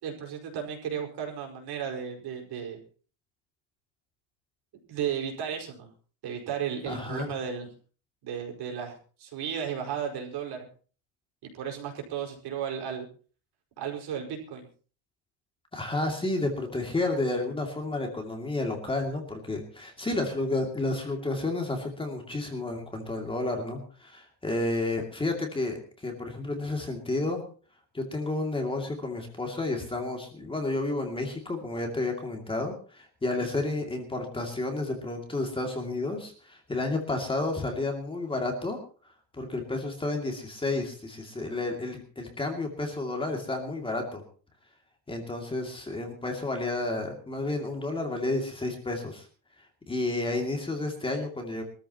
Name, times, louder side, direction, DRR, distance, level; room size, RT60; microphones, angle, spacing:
voice 1, 0.0-2.8 4.9-5.9 6.2-7.7 8.2-10.7 11.4-13.1 13.8-14.7 33.4-33.5, right 8 dB, 55° right, 2 dB, 5.0 m, -34 dB
voice 2, 6.9-7.3 15.7-27.4 27.9-38.8 39.4-44.2 45.1-49.3 49.9-51.6, left 2 dB, 10° left, 2 dB, 2.5 m, -31 dB
24.0 x 14.0 x 2.9 m, 0.39 s
cardioid pair, 170°, 46 cm